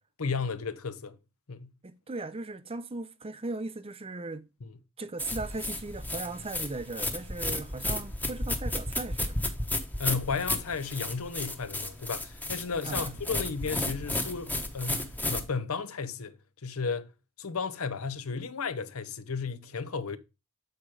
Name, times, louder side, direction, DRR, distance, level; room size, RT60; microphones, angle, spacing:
voice 1, 0.2-1.2 1.5-1.7 4.6-4.7 10.0-16.4 16.6-17.1 17.4-20.2, left 5 dB, 75° left, 0.8 m, -34 dB
voice 2, 1.8-4.5 5.0-9.4 12.8-13.1, right 3 dB, 25° right, 0.6 m, -38 dB
sound 1, 5.2-15.4, left 1 dB, 10° left, 1.0 m, -33 dB
8.1 x 4.4 x 4.8 m
head